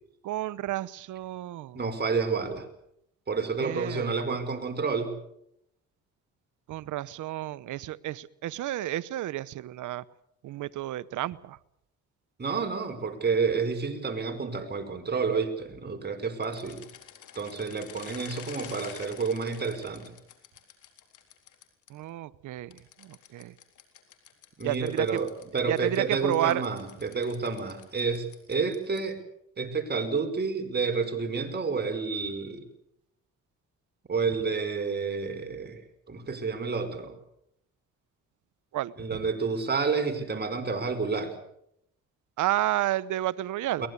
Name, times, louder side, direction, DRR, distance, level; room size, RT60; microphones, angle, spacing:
voice 1, 0.2-1.8 3.6-4.2 6.7-10.0 10.4-11.6 21.9-23.5 24.6-25.2 25.7-26.6 38.7-39.2 42.4-43.9, right 14 dB, 80° right, 17 dB, 1.0 m, -31 dB
voice 2, 1.7-2.7 3.3-5.1 12.4-16.8 17.3-20.1 24.6-25.3 25.5-29.2 29.6-32.6 34.1-35.8 36.1-37.1 39.0-41.3 43.8-43.9, right 5 dB, 35° right, 5 dB, 5.0 m, -29 dB
sound 1, 16.4-21.9 22.7-29.2, left 9 dB, 80° left, 3.9 m, -49 dB
23.0 x 19.5 x 8.3 m, 0.76 s
cardioid pair, 90°, 30 cm